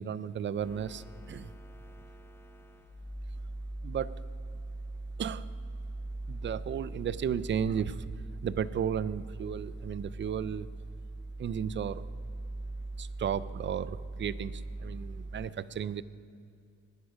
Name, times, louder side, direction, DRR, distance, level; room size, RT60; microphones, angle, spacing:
voice 1, 0.0-1.5 3.8-4.2 5.2-5.5 6.3-8.1 8.4-10.7 11.4-12.0 13.0-16.0, right 8 dB, 40° right, 16 dB, 0.5 m, -34 dB
sound 1, 0.6-15.5, right 2 dB, 10° left, 0.5 m, -41 dB
19.5 x 9.9 x 5.2 m, 2.5 s
cardioid pair, 90°, 30 cm